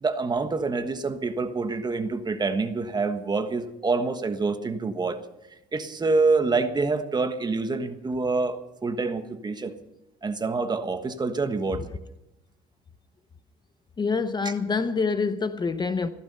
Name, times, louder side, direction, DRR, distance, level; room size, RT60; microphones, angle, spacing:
voice 1, 0.0-5.2 5.7-9.7 10.2-11.8, right 3 dB, 25° right, 1.4 m, -26 dB
voice 2, 14.0-16.1, left 4 dB, 25° left, 0.8 m, -26 dB
15.5 x 13.5 x 5.5 m
cardioid pair, 110°, 17 cm